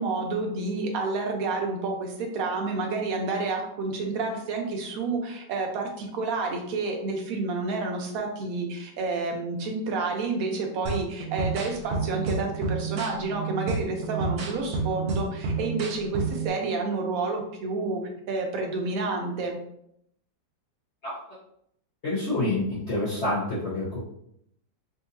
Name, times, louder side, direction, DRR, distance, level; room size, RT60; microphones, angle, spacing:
voice 1, 0.0-19.6, right 3 dB, 65° right, 2 dB, 1.0 m, -29 dB
sound 1, 10.9-16.5, right 4 dB, 85° right, 0.5 m, -30 dB
voice 2, 22.0-24.0, left 2 dB, 50° left, -10 dB, 1.0 m, -27 dB
3.8 x 2.6 x 2.6 m, 0.73 s
omnidirectional pair, 1.9 m